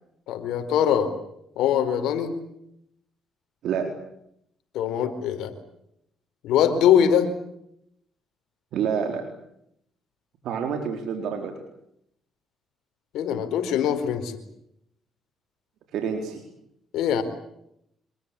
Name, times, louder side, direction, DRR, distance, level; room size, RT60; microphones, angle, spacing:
voice 1, 0.3-1.1 1.6-2.3 4.7-5.5 6.4-7.3 13.1-14.4 16.9-17.2, left 9 dB, 85° left, 9 dB, 4.5 m, -22 dB
voice 2, 8.7-9.2 10.4-11.5 15.9-16.4, right 7 dB, 75° right, 4 dB, 4.2 m, -27 dB
27.0 x 22.0 x 8.6 m, 0.76 s
cardioid pair, 85°, 0 cm